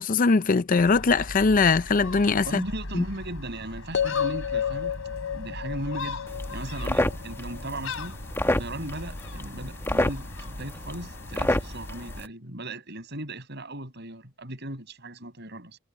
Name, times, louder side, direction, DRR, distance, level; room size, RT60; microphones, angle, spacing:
voice 1, 0.0-2.6 2.9-3.0, left 4 dB, 40° left, 0.5 m, -21 dB
Gull seagull, 0.8-12.2, left 2 dB, 90° left, 4.2 m, -39 dB
voice 2, 2.4-4.9 5.3-6.2 6.5-8.2 8.4-15.8, right 1 dB, 55° right, 7.6 m, -37 dB
sound 1, 3.9-8.1, left 8 dB, 60° left, 1.8 m, -31 dB
sound 2, 6.3-12.3, left 1 dB, 10° left, 1.4 m, -30 dB
head